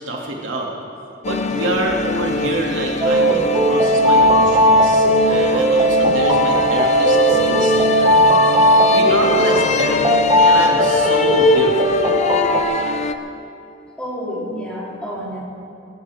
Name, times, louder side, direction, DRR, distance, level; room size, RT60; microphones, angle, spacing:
voice 1, 0.1-0.7 1.2-8.2 8.9-12.1, right 1 dB, 90° right, -2 dB, 2.6 m, -27 dB
sound 1, 1.2-13.1, left 4 dB, 35° left, 0.7 m, -23 dB
sound 2, 3.0-12.6, equal, 25° right, 1.4 m, -16 dB
voice 2, 14.0-15.4, equal, 5° left, -6 dB, 3.7 m, -29 dB
25.0 x 14.0 x 3.7 m, 2.5 s
head